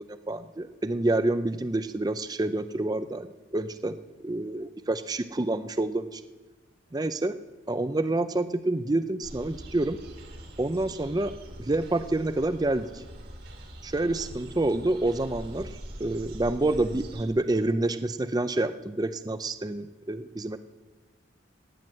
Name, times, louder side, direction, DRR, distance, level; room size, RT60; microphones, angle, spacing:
voice 1, 0.0-4.0 4.2-6.2 6.9-7.3 7.7-10.0 10.6-11.3 11.6-13.0 13.8-15.7 16.0-20.6, right 2 dB, 20° right, 11 dB, 0.4 m, -28 dB
sound 1, 9.2-17.3, right 1 dB, 50° right, 2.0 m, -43 dB
17.0 x 9.4 x 7.5 m, 1.2 s
head